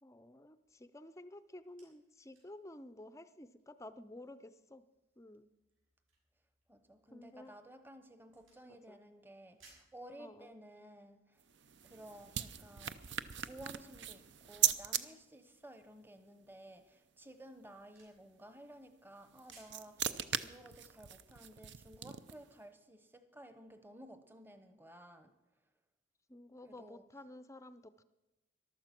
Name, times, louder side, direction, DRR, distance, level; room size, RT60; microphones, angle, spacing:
voice 1, 0.0-4.8 5.2-5.5 7.1-7.6 8.6-9.0 10.2-10.5 26.3-28.0, left 1 dB, 15° left, 13 dB, 0.5 m, -52 dB
sound 1, 1.3-19.9, right 3 dB, 80° right, 7.1 m, -71 dB
voice 2, 6.7-11.4 11.8-13.0 13.4-25.3 26.6-27.0, right 1 dB, 10° right, 9 dB, 0.9 m, -55 dB
sound 2, 11.4-15.0 19.2-22.5, right 10 dB, 60° right, 0.6 m, -38 dB
14.5 x 12.0 x 5.9 m, 1.0 s
head